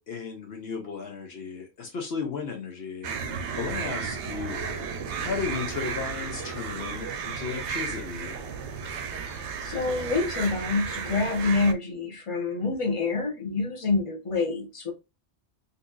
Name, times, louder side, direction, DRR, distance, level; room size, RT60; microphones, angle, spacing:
voice 1, 0.0-3.1 3.6-4.9 5.2-8.4, left 5 dB, 70° left, 1.0 m, -34 dB
sound 1, 3.0-11.7, right 6 dB, 90° right, 0.9 m, -33 dB
voice 2, 9.6-14.9, left 3 dB, 30° left, 1.0 m, -27 dB
4.0 x 2.8 x 2.4 m
omnidirectional pair, 1.1 m